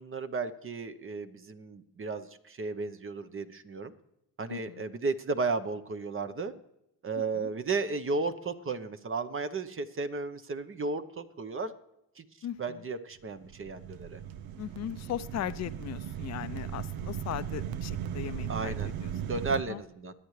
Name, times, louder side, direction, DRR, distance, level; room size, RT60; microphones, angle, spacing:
voice 1, 0.0-3.9 4.4-6.5 7.0-11.7 12.2-12.3 12.6-14.2 18.5-18.9 19.3-20.1, right 3 dB, 35° right, 9 dB, 1.0 m, -34 dB
voice 2, 4.5-4.9 7.1-7.5 12.4-12.8 14.6-19.1 19.5-19.8, left 11 dB, 45° left, 13 dB, 0.6 m, -38 dB
sound 1, 13.3-19.6, right 9 dB, 75° right, 0.7 m, -37 dB
23.0 x 9.4 x 3.3 m, 0.82 s
supercardioid pair, 70°, 36 cm